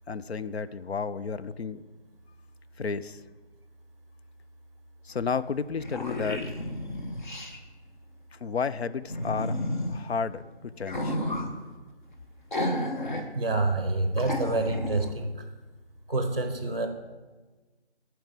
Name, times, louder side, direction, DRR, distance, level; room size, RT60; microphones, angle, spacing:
voice 1, 0.1-1.9 2.8-3.2 5.0-6.5 8.3-9.6 9.9-11.2, left 5 dB, 70° left, 14 dB, 0.5 m, -32 dB
sound 1, 5.2-5.3 5.6-7.6 9.1-10.0 10.8-11.5 12.5-13.3 13.6-13.7 14.2-15.1, left 1 dB, 45° left, 1.1 m, -31 dB
voice 2, 13.3-15.3 16.1-16.9, right 2 dB, 25° right, 6 dB, 0.6 m, -27 dB
9.1 x 4.6 x 7.4 m, 1.3 s
figure-of-eight pair, 165°, 33 cm